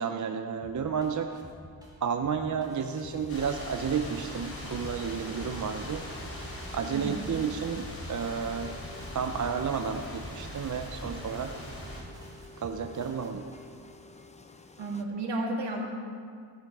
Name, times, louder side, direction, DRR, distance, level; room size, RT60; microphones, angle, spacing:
voice 1, 0.0-1.3 2.0-6.0 6.7-8.7 9.1-11.5 12.6-13.4, right 6 dB, 45° right, 6 dB, 0.6 m, -31 dB
sound 1, 0.6-13.8, right 1 dB, 10° right, 2.7 m, -49 dB
sound 2, 2.7-15.0, left 2 dB, 15° left, 0.7 m, -51 dB
sound 3, 3.3-12.0, left 1 dB, 30° left, 3.0 m, -41 dB
voice 2, 6.9-7.3 14.8-15.8, right 2 dB, 70° right, -2 dB, 2.5 m, -32 dB
15.5 x 9.2 x 4.8 m, 2.2 s
wide cardioid pair, 115°, 44 cm